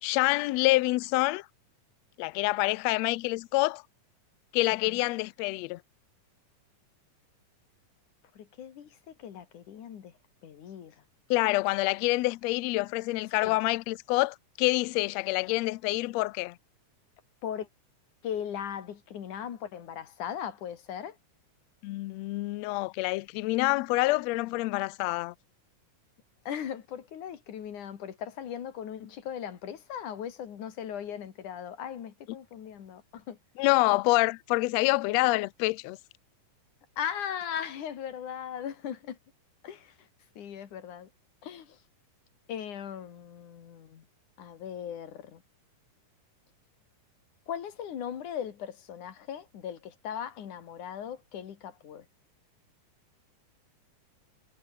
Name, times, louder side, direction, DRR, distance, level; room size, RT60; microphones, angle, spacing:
voice 1, 0.0-1.4 2.2-3.8 4.5-5.8 11.3-16.5 21.8-25.3 33.6-36.0, left 21 dB, 90° left, 1.5 m, -27 dB
voice 2, 8.4-10.1 10.4-11.0 13.4-13.6 17.4-17.7 18.2-21.2 26.5-33.4 37.0-39.2 39.6-40.1 40.4-41.1 41.4-41.8 42.5-44.0 44.4-45.4 47.5-52.1, left 9 dB, 70° left, 3.6 m, -38 dB
omnidirectional pair, 3.8 m